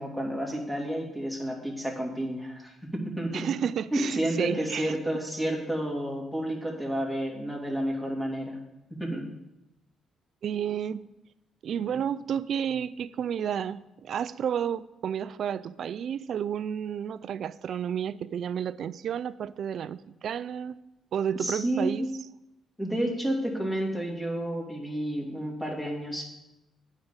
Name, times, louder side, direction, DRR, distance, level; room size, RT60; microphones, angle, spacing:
voice 1, 0.0-3.5 3.9-8.6 8.9-9.3 21.4-22.0 22.8-26.2, right 1 dB, 5° left, -1 dB, 2.5 m, -30 dB
voice 2, 3.3-4.9 10.4-11.0 11.6-20.8 21.1-22.1, right 8 dB, 65° right, 16 dB, 0.3 m, -31 dB
8.8 x 5.4 x 7.1 m, 0.92 s
cardioid pair, 90°, 0 cm